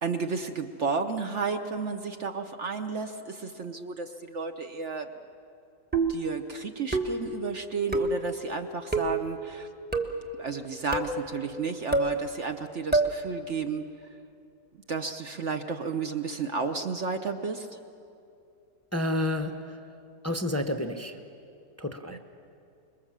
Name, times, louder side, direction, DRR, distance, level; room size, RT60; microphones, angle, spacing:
voice 1, 0.0-5.1 6.1-9.7 10.4-13.9 14.9-17.8 22.1-22.2, right 5 dB, 55° right, 6 dB, 1.0 m, -32 dB
sound 1, 5.9-6.3 6.9-7.3 7.9-8.2 8.9-9.2 9.9-10.3 10.9-11.2 11.9-12.2 12.9-13.2, right 2 dB, 5° right, 1.0 m, -26 dB
voice 2, 18.9-19.8 20.2-21.2 21.8-22.2, left 1 dB, 15° left, 6 dB, 0.5 m, -30 dB
26.0 x 22.0 x 7.4 m, 2.5 s
omnidirectional pair, 1.7 m